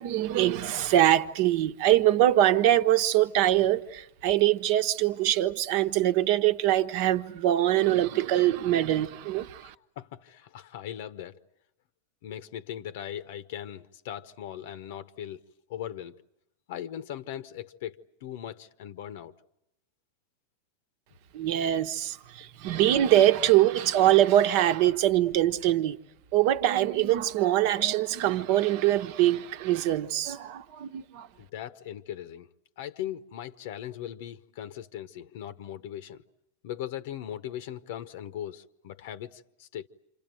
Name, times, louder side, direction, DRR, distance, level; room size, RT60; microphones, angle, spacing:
voice 1, 0.0-9.7 21.3-26.0 26.3-31.3, right 13 dB, 50° right, 1.1 m, -23 dB
voice 2, 10.0-11.4 12.2-15.4 15.7-16.2 16.7-19.3 31.4-32.5 32.8-36.2 36.6-39.9, left 11 dB, 60° left, 0.9 m, -39 dB
28.5 x 26.0 x 7.8 m
supercardioid pair, 155°, 0 cm